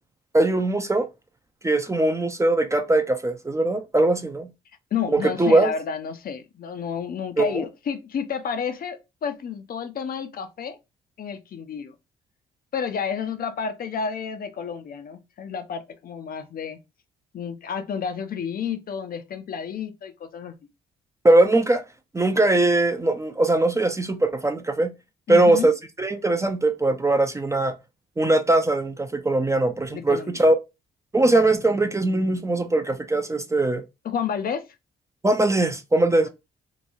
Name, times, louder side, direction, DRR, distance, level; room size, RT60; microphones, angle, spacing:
voice 1, 0.3-1.1 1.6-4.5 5.2-5.7 7.4-7.6 21.2-21.8 22.1-24.9 25.3-25.7 26.0-27.7 28.2-30.5 31.1-33.8 35.2-36.3, right 2 dB, 15° right, 0.4 m, -21 dB
voice 2, 4.9-10.8 11.2-11.9 12.7-16.8 17.3-20.6 25.3-25.7 29.9-30.4 34.0-34.7 36.2-36.3, left 7 dB, 50° left, 0.5 m, -30 dB
2.9 x 2.2 x 2.5 m
cardioid pair, 90°, 20 cm